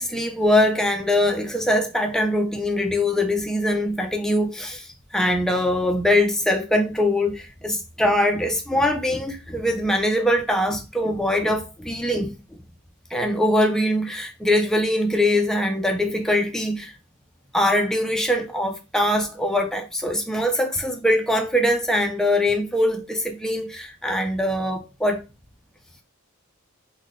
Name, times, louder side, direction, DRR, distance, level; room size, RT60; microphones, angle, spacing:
voice 1, 0.0-12.4 13.1-16.9 17.5-25.2, left 1 dB, ahead, 0.3 m, -22 dB
3.5 x 2.1 x 3.5 m
head